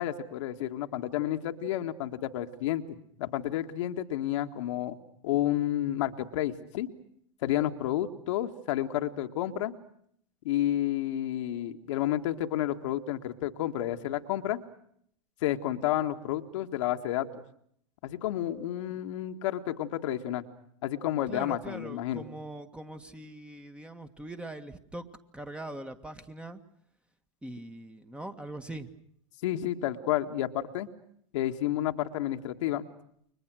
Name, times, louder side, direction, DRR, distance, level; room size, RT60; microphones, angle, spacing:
voice 1, 0.0-5.0 5.2-6.9 7.4-9.7 10.4-14.6 15.4-17.3 18.0-20.4 20.8-22.2 29.4-30.9 31.3-32.9, left 12 dB, 65° left, 5 dB, 1.8 m, -30 dB
voice 2, 21.3-25.0 25.3-26.6 27.4-28.9, right 1 dB, 5° right, 7 dB, 1.9 m, -42 dB
30.0 x 24.0 x 6.4 m, 0.68 s
hypercardioid pair, 100°, 17 cm